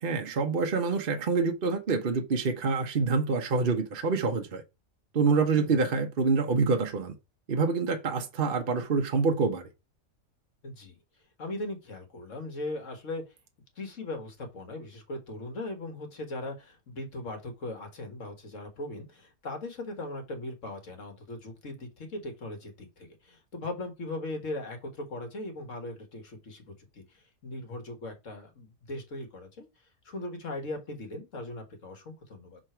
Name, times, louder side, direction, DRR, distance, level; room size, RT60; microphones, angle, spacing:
voice 1, 0.0-4.6 5.1-7.1 7.5-9.7, right 4 dB, 45° right, 1.0 m, -26 dB
voice 2, 10.6-11.0 11.4-13.2 13.8-29.7 30.1-32.6, left 2 dB, 60° left, 1.9 m, -39 dB
6.3 x 3.8 x 4.5 m
omnidirectional pair, 1.5 m